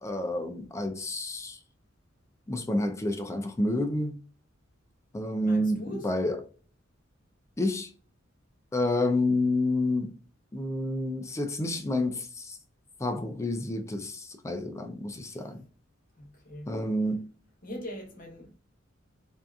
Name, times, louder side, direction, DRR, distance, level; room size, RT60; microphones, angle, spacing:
voice 1, 0.0-1.6 2.5-4.2 5.1-6.4 7.6-7.9 8.7-10.1 10.5-12.6 13.0-15.6 16.7-17.2, left 1 dB, 15° left, 0.4 m, -29 dB
voice 2, 5.4-6.1 15.1-15.5 16.1-16.8 17.6-18.6, equal, 45° left, 1.0 m, -42 dB
2.7 x 2.3 x 2.3 m
head